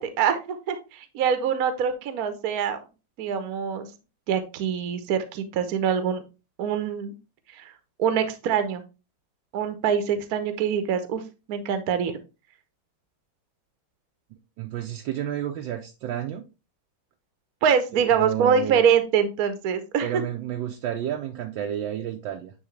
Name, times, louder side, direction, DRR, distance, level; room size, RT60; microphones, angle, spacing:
voice 1, 0.0-2.8 3.2-3.9 4.3-6.2 6.6-7.1 7.6-7.7 8.0-8.8 9.5-11.2 11.5-12.2 17.6-20.1, right 7 dB, 60° right, 1.1 m, -24 dB
voice 2, 14.6-16.4 17.9-18.8 20.0-22.5, right 11 dB, 75° right, 1.3 m, -31 dB
9.5 x 3.2 x 3.2 m
omnidirectional pair, 2.2 m